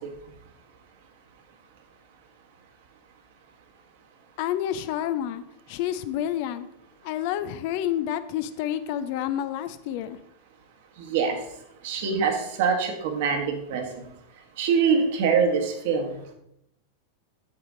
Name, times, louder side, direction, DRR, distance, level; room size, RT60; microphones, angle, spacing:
voice 1, 4.4-6.7 7.0-10.2, left 11 dB, 45° left, 13 dB, 0.5 m, -29 dB
voice 2, 11.0-11.4 11.8-13.8 14.6-16.2, right 6 dB, 50° right, 4 dB, 1.4 m, -24 dB
8.9 x 7.2 x 3.8 m, 0.78 s
figure-of-eight pair, 90°, 0 cm